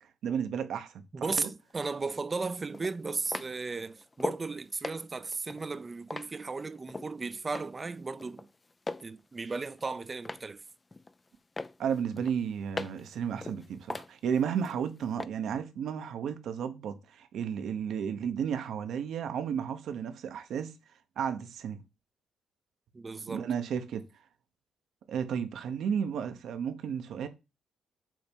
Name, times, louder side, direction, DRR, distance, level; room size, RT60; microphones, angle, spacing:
voice 1, 0.2-1.5 11.8-20.7 21.2-21.8 23.3-24.0 25.1-27.3, right 7 dB, 70° right, 1.0 m, -33 dB
voice 2, 1.1-8.5 9.0-10.6 22.9-23.5, right 4 dB, 30° right, 0.5 m, -35 dB
sound 1, 1.7-1.8 2.7-4.5 4.8-7.1 7.5-7.9 8.2-9.1 9.5-10.5 10.9-11.3 11.6-13.1 13.4-14.8 15.2-15.3, left 3 dB, 25° left, 0.4 m, -39 dB
7.6 x 2.8 x 5.3 m
cardioid pair, 90°, 0 cm